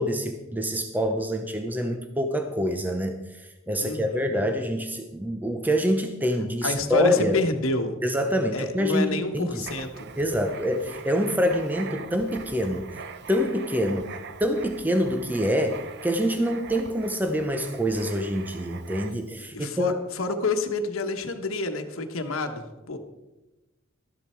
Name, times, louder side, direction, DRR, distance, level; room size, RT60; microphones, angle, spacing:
voice 1, 0.0-7.4 8.0-9.7 10.2-13.0 13.3-14.1 14.4-20.0, equal, 10° right, 6 dB, 0.6 m, -26 dB
voice 2, 3.8-4.3 6.6-8.0 8.5-10.1 19.5-23.0, left 3 dB, 70° left, 6 dB, 1.2 m, -28 dB
Writing, 9.6-19.4, right 5 dB, 50° right, 0.7 m, -42 dB
13.0 x 10.5 x 4.5 m, 1.0 s
head